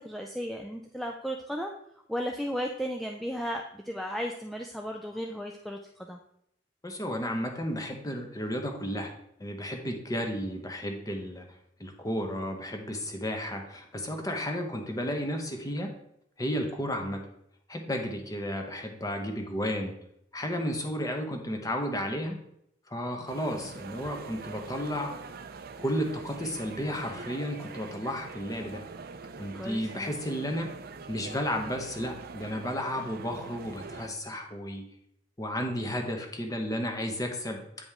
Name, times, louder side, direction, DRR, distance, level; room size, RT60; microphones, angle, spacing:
voice 1, 0.0-1.7 2.1-6.2 29.5-30.1, equal, ahead, 1 dB, 0.4 m, -35 dB
voice 2, 6.8-9.1 9.4-11.4 11.8-15.9 16.4-17.3 17.7-19.9 20.3-22.4 22.9-25.1 25.8-28.8 29.4-30.7 31.1-34.8 35.4-37.6, equal, 20° left, 3 dB, 1.0 m, -33 dB
sound 1, 23.3-34.1, right 4 dB, 55° right, 0.5 m, -44 dB
8.8 x 5.0 x 3.6 m, 0.75 s
head